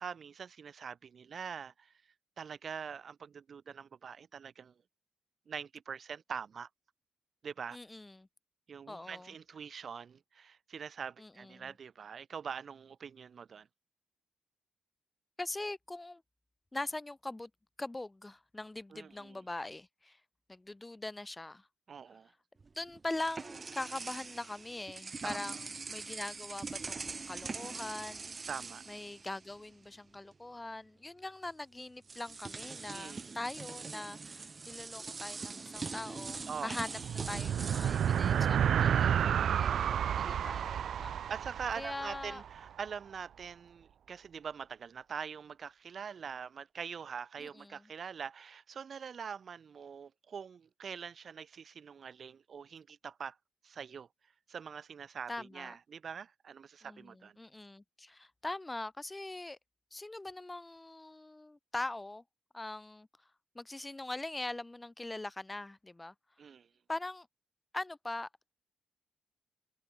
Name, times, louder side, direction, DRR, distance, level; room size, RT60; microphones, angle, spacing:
voice 1, 0.0-1.9 2.4-4.7 5.5-6.7 7.4-7.8 8.7-13.7 18.9-19.4 21.9-22.3 25.2-25.6 28.5-28.8 32.9-33.3 36.5-36.8 41.3-53.4 53.6-54.1 54.5-57.4 66.4-66.7, right 6 dB, 55° right, 1.6 m, -44 dB
voice 2, 7.7-8.3 8.9-9.3 11.2-11.7 15.4-16.2 16.7-17.5 17.8-20.2 20.5-21.7 22.8-25.6 25.9-28.3 28.9-37.0 37.3-41.1 41.8-42.4 47.4-47.9 55.3-55.7 56.8-59.6 59.9-62.2 62.5-63.1 63.5-66.1 66.9-67.3 67.7-68.5, left 2 dB, 15° left, 1.5 m, -42 dB
sound 1, 22.6-29.9 30.1-30.4 31.5-31.6 32.0-39.2, right 4 dB, 35° right, 2.8 m, -43 dB
sound 2, 36.9-42.6, right 9 dB, 70° right, 0.5 m, -30 dB
cardioid pair, 85°, 0 cm